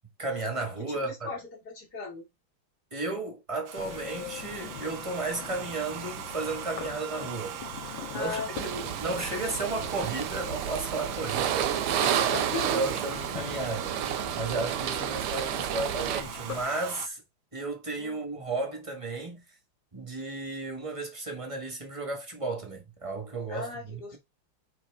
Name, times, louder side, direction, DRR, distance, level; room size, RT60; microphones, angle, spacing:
voice 1, 0.2-1.3 2.9-7.6 8.1-8.7 9.0-12.1 12.5-14.0 14.3-17.2 17.5-19.4 19.9-24.2, right 3 dB, 15° right, 1.3 m, -34 dB
voice 2, 0.9-2.3 8.1-8.9 11.9-12.8 18.0-18.3 23.5-24.2, left 3 dB, 50° left, 3.0 m, -37 dB
Domestic sounds home sounds, 3.7-17.1, right 12 dB, 75° right, 1.3 m, -40 dB
sound 1, 3.8-16.7, left 9 dB, 70° left, 1.7 m, -43 dB
sound 2, 8.5-16.2, right 10 dB, 90° right, 1.7 m, -31 dB
9.1 x 4.2 x 3.5 m
omnidirectional pair, 2.4 m